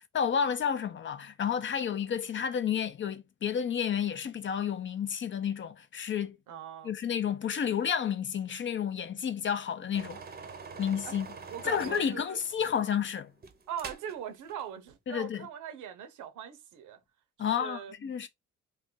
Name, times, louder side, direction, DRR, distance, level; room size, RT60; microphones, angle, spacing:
voice 1, 0.1-6.4 6.8-10.2 10.8-11.3 11.6-13.3 15.1-15.4 17.4-18.3, left 8 dB, 40° left, 0.6 m, -31 dB
voice 2, 6.5-7.0 11.0-11.1 11.5-12.4 13.7-17.0 17.4-17.9, right 9 dB, 80° right, 0.8 m, -41 dB
sound 1, 9.9-14.2 14.5-14.6, right 5 dB, 30° right, 0.7 m, -45 dB
2.6 x 2.5 x 3.7 m
cardioid pair, 90°, 30 cm